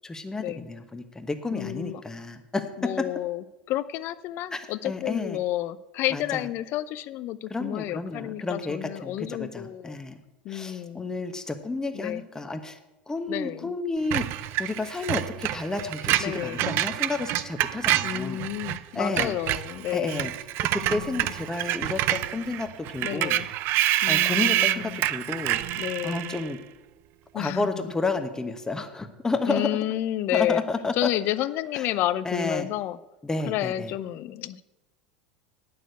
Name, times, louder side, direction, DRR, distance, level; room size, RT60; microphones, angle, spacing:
voice 1, 0.0-3.1 4.5-5.4 6.1-6.4 7.5-10.2 10.5-12.8 13.1-18.4 18.9-19.4 19.9-20.3 20.7-23.4 24.1-26.6 27.3-29.8 30.3-31.1 31.7-31.9 32.2-32.7 33.2-33.9, left 3 dB, 15° left, 8 dB, 1.2 m, -31 dB
voice 2, 1.5-2.0 2.8-10.0 10.4-11.0 11.9-12.2 13.3-13.7 16.2-16.7 18.0-20.3 20.8-21.3 23.0-23.5 24.0-25.0 25.8-26.4 27.3-27.7 29.5-30.6 30.9-33.0 33.5-34.6, left 14 dB, 50° left, 14 dB, 0.5 m, -30 dB
Screech, 14.1-18.8 19.1-26.5, right 14 dB, 50° right, 0.5 m, -27 dB
9.1 x 6.6 x 8.0 m, 1.0 s
hypercardioid pair, 85°, 5 cm